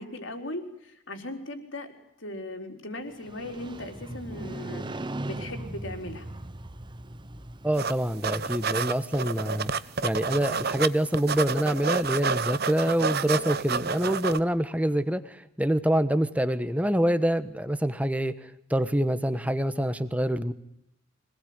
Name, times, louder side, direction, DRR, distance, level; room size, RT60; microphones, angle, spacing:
voice 1, 0.0-6.3, left 1 dB, 65° left, 4 dB, 4.3 m, -38 dB
Motorcycle, 3.1-9.0, right 1 dB, 25° right, 1.0 m, -39 dB
voice 2, 7.6-9.7 10.0-20.5, right 1 dB, 5° right, 12 dB, 1.2 m, -26 dB
sound 1, 7.8-8.0 8.2-10.9 11.1-14.4, right 5 dB, 50° right, 0.9 m, -29 dB
25.5 x 19.5 x 9.6 m, 0.79 s
head